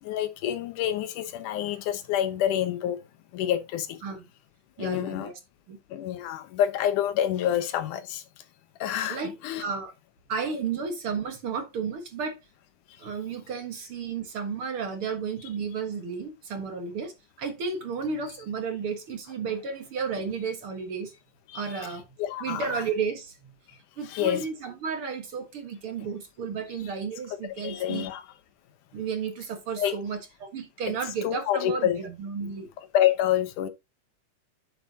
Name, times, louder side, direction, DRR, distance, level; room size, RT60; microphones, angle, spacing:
voice 1, 0.0-3.0 3.3-4.0 4.8-5.3 5.9-8.2 8.8-9.6 21.5-21.9 22.2-22.8 24.1-24.5 27.6-28.2 29.8-30.0 30.9-31.0 31.2-32.0 32.9-33.7, left 11 dB, 90° left, 2.5 m, -27 dB
voice 2, 4.8-5.4 5.7-5.8 9.1-9.9 10.3-12.4 13.0-21.1 21.5-22.0 22.4-23.4 24.0-28.1 28.9-32.7, right 5 dB, 50° right, 2.0 m, -33 dB
9.2 x 7.3 x 2.8 m
omnidirectional pair, 3.5 m